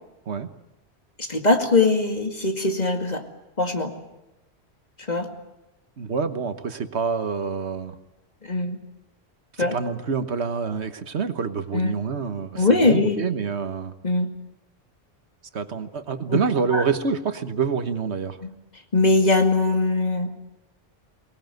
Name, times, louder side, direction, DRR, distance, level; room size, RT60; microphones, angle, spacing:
voice 1, 1.2-3.2 3.6-3.9 5.1-5.3 8.4-8.8 9.6-9.8 11.7-11.9 12.6-13.2 14.0-14.3 16.3-16.4 16.7-16.8 18.4-18.5 18.9-20.3, left 3 dB, 40° left, 4 dB, 2.3 m, -21 dB
voice 2, 6.0-8.0 9.6-13.9 15.5-18.4, right 5 dB, 85° right, 9 dB, 1.6 m, -27 dB
24.0 x 19.5 x 9.3 m, 0.95 s
omnidirectional pair, 1.1 m